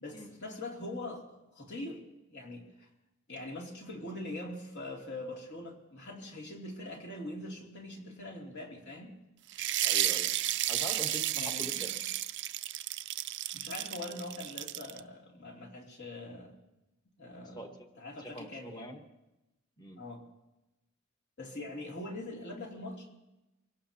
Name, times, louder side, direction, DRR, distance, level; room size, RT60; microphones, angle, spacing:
voice 1, 0.0-2.0 2.3-2.9 3.3-9.1 11.3-11.9 13.5-16.5 17.2-17.7 18.0-18.9 20.0-20.2 21.4-23.1, left 1 dB, 55° left, -1 dB, 2.9 m, -43 dB
sound 1, 9.5-15.0, right 14 dB, 60° right, 0.5 m, -32 dB
voice 2, 9.8-10.3 10.7-11.9 17.6-17.7 18.2-19.0 19.8-20.0, equal, 20° left, 4 dB, 1.5 m, -43 dB
25.0 x 17.5 x 2.9 m, 0.97 s
head